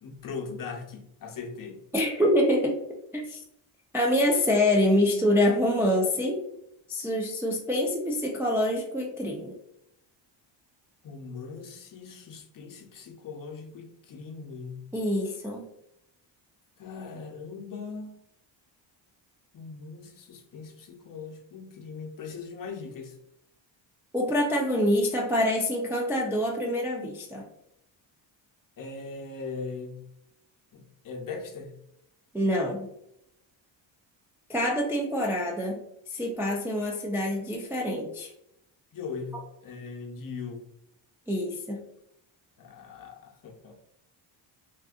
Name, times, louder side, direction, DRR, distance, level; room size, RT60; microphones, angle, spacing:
voice 1, 0.0-1.8 11.0-14.8 16.8-18.1 19.5-23.2 28.8-30.1 30.7-31.8 38.9-40.7 42.6-43.9, left 5 dB, 45° left, 2 dB, 0.7 m, -40 dB
voice 2, 1.9-2.8 3.1-3.4 3.9-6.4 6.9-9.5 14.9-15.7 24.1-27.5 32.3-32.9 34.5-35.8 36.1-38.3 41.3-41.8, left 1 dB, 5° right, -2 dB, 0.3 m, -26 dB
3.5 x 2.5 x 2.4 m, 0.78 s
cardioid pair, 110°, 47 cm